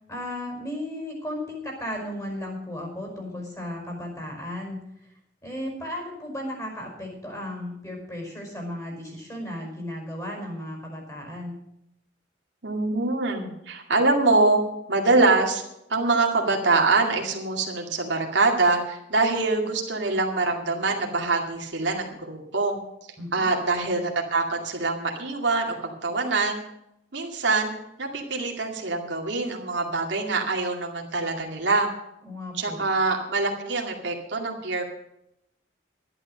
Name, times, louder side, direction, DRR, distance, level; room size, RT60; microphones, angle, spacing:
voice 1, 0.1-5.1 5.4-11.6 23.2-23.5 32.2-32.8, left 1 dB, 20° left, 1 dB, 5.4 m, -35 dB
voice 2, 12.6-14.6 14.9-15.6 15.9-22.8 23.3-26.6 27.1-27.7 28.0-31.9 32.6-34.8, right 3 dB, 75° right, 1 dB, 2.3 m, -24 dB
12.0 x 11.0 x 6.4 m, 0.82 s
head